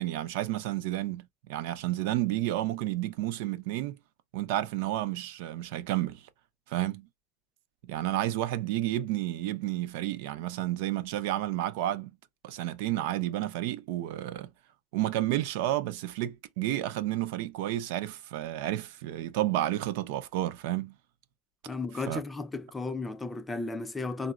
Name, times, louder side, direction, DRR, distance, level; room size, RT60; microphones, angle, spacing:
voice 1, 0.0-4.0 4.3-6.2 6.7-7.1 7.8-12.1 12.4-14.5 14.9-20.9 22.1-22.2, right 14 dB, 70° right, 0.5 m, -31 dB
voice 2, 21.7-24.3, left 3 dB, 10° left, 0.3 m, -34 dB
3.8 x 2.0 x 2.3 m
supercardioid pair, 130°, 0 cm